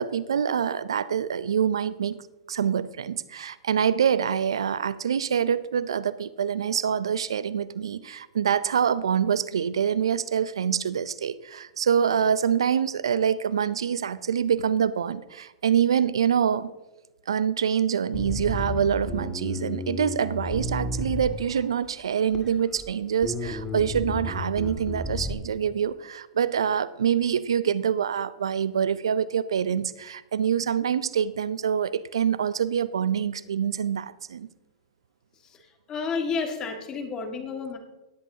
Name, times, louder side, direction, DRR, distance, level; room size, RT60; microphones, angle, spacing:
voice 1, 0.0-2.2 2.5-16.7 17.3-34.5, right 8 dB, 75° right, 17 dB, 0.5 m, -25 dB
Bass guitar, 18.1-21.7 22.3-22.9 23.2-25.3, left 1 dB, 5° left, 2.0 m, -32 dB
voice 2, 35.9-37.8, left 4 dB, 25° left, 5 dB, 1.8 m, -31 dB
18.5 x 8.3 x 2.8 m, 1.0 s
hypercardioid pair, 110°, 3 cm